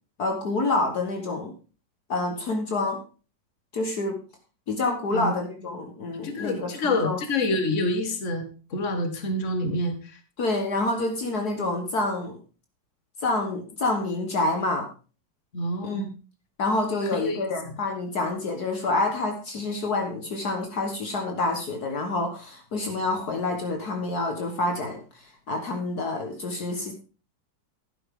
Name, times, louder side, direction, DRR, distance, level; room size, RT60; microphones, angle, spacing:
voice 1, 0.2-1.5 2.1-3.0 3.7-4.2 4.7-7.2 10.4-12.4 13.2-14.9 15.8-16.1 16.6-26.9, left 2 dB, 60° left, 3 dB, 1.9 m, -27 dB
voice 2, 6.2-10.0 15.5-16.1 17.1-17.5, left 1 dB, 45° left, 7 dB, 1.9 m, -27 dB
12.0 x 9.7 x 3.7 m, 0.35 s
omnidirectional pair, 2.0 m